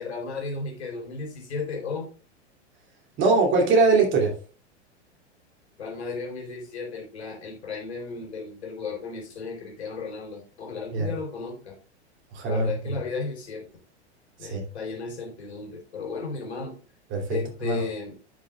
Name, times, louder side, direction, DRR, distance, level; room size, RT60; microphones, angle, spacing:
voice 1, 0.0-2.1 5.8-11.8 12.4-13.7 14.4-16.8 17.3-18.1, left 4 dB, 70° left, 1 dB, 3.6 m, -34 dB
voice 2, 3.2-4.3 10.9-11.1 12.3-12.9 14.4-14.6 17.1-17.8, right 4 dB, 35° right, 1 dB, 2.9 m, -22 dB
11.0 x 6.3 x 2.4 m, 0.37 s
figure-of-eight pair, 90°, 34 cm